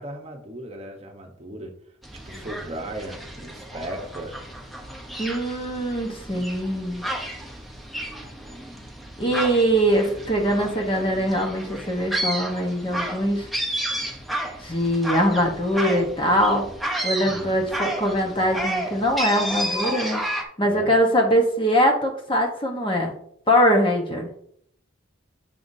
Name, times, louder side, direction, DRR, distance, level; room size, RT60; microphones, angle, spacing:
voice 1, 0.0-1.7 2.1-4.4 17.3-17.6 20.6-21.0, right 1 dB, 30° right, 3 dB, 1.0 m, -36 dB
sound 1, 2.0-20.4, right 1 dB, ahead, 0.7 m, -32 dB
voice 2, 5.2-7.0 9.2-13.5 14.6-16.7 17.0-23.1 23.5-24.3, equal, 25° left, 1 dB, 1.0 m, -22 dB
7.4 x 5.7 x 2.7 m, 0.66 s
head